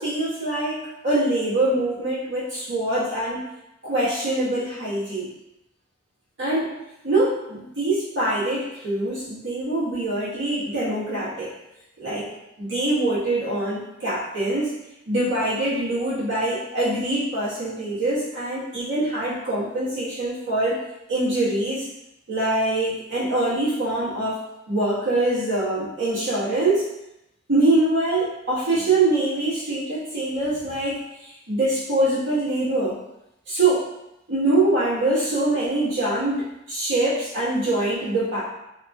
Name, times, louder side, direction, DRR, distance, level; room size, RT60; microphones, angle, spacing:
voice 1, 0.0-3.5 3.8-5.3 6.4-6.7 7.0-11.5 12.0-12.3 12.6-14.7 15.1-20.8 21.1-21.9 22.3-26.9 27.5-31.0 31.2-33.0 33.5-33.8 34.3-38.4, right 2 dB, 65° right, -10 dB, 1.3 m, -24 dB
2.9 x 2.6 x 2.3 m, 0.87 s
head